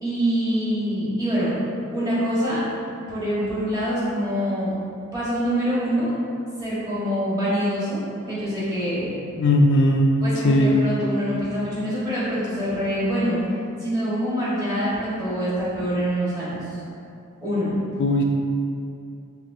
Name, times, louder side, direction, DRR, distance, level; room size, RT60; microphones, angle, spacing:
voice 1, 0.0-1.5 1.9-2.6 3.1-4.7 5.1-6.1 6.6-9.1 10.2-13.4 13.8-16.8 17.4-17.8, equal, 20° right, -11 dB, 1.4 m, -25 dB
voice 2, 9.4-10.1 10.4-10.9 18.0-18.2, left 1 dB, 55° left, 1 dB, 0.3 m, -18 dB
4.6 x 3.3 x 2.6 m, 2.5 s
head